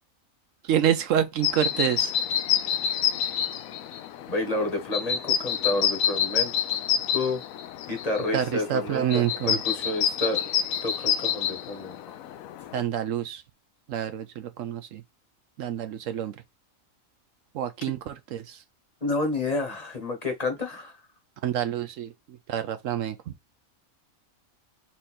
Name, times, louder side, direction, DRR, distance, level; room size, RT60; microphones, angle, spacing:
voice 1, 0.7-2.1 8.3-9.6 12.7-13.4 13.9-15.0 15.6-16.3 17.5-18.6 21.4-22.1 22.5-23.2, right 10 dB, 70° right, 1.0 m, -27 dB
sound 1, 1.4-12.8, left 9 dB, 80° left, 1.0 m, -28 dB
voice 2, 4.3-6.5 7.1-7.4 7.9-10.4 10.8-12.0 19.0-20.9, left 2 dB, 30° left, 1.2 m, -29 dB
4.4 x 2.5 x 4.2 m
omnidirectional pair, 1.4 m